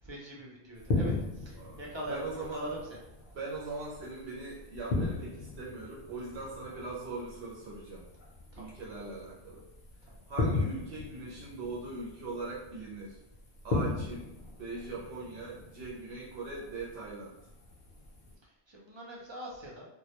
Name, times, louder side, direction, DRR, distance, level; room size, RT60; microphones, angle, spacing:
voice 1, 0.0-3.0 8.5-8.8 10.1-10.2 18.7-19.9, right 1 dB, 45° right, -3 dB, 0.3 m, -42 dB
sound 1, 0.8-18.3, left 3 dB, 50° left, 0.6 m, -38 dB
voice 2, 1.5-2.7 3.3-8.1 8.5-9.6 10.3-13.2 13.6-14.3 14.6-17.4, right 3 dB, 85° right, -5 dB, 0.8 m, -41 dB
2.2 x 2.0 x 2.8 m, 0.89 s
omnidirectional pair, 1.1 m